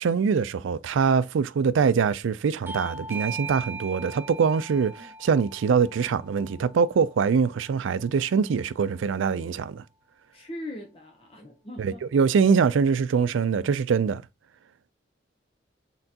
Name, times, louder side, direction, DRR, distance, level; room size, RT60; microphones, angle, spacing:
voice 1, 0.0-9.8 11.8-14.2, right 6 dB, 85° right, 0.4 m, -23 dB
Bell / Doorbell, 2.7-7.8, right 3 dB, 10° right, 0.4 m, -39 dB
voice 2, 10.3-12.1, left 1 dB, 30° left, 0.7 m, -40 dB
4.3 x 3.8 x 2.8 m
head